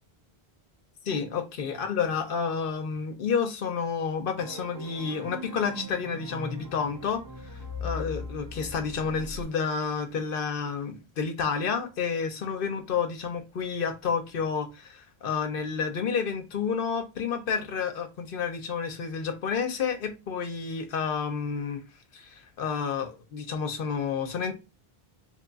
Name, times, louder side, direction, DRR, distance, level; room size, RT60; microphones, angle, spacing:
voice 1, 1.0-7.2 7.8-21.8 22.1-24.5, left 6 dB, 65° left, 0.8 m, -30 dB
sound 1, 4.4-9.4, left 2 dB, 30° right, 0.4 m, -39 dB
3.2 x 2.3 x 3.9 m
omnidirectional pair, 1.0 m